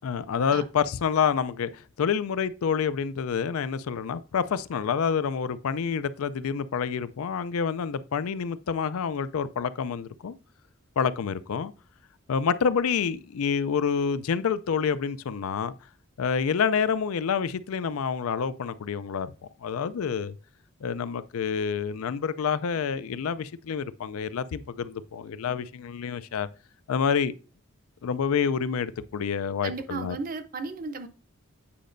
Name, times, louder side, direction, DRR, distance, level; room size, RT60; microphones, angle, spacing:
voice 1, 0.0-10.4 11.0-11.7 12.3-15.7 16.2-19.3 19.6-20.3 20.8-26.5 26.9-27.3 28.0-30.2, left 6 dB, 90° left, 0.4 m, -28 dB
voice 2, 29.6-31.1, right 3 dB, 40° right, 0.6 m, -34 dB
8.5 x 5.0 x 2.6 m
head